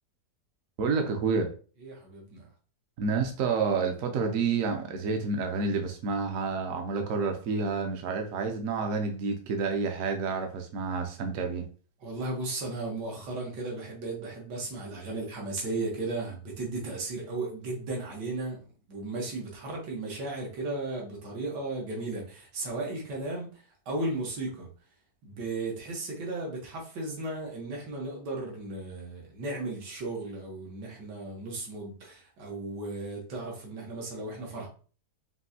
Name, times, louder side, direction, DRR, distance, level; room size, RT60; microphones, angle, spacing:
voice 1, 0.8-1.5 3.0-11.6, right 4 dB, 65° right, 4 dB, 0.9 m, -29 dB
voice 2, 1.8-2.5 12.0-18.6 18.9-24.7 25.2-34.7, right 2 dB, 85° right, -1 dB, 1.8 m, -35 dB
5.3 x 2.7 x 2.7 m, 0.39 s
omnidirectional pair, 1.8 m